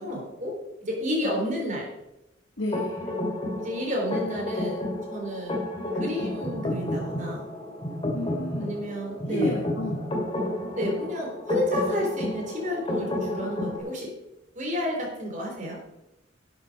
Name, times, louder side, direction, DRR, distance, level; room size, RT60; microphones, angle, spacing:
voice 1, 0.0-1.9 3.1-3.2 3.6-4.8 5.1-5.6 5.9-7.5 8.6-9.6 10.7-14.1 14.5-15.8, left 1 dB, 40° right, 0 dB, 3.7 m, -31 dB
voice 2, 2.6-3.0 8.1-8.8 9.3-10.0, left 1 dB, 75° left, 0 dB, 1.6 m, -32 dB
sound 1, 2.7-13.8, left 1 dB, 30° left, 2.5 m, -31 dB
11.5 x 7.9 x 5.3 m, 0.91 s
head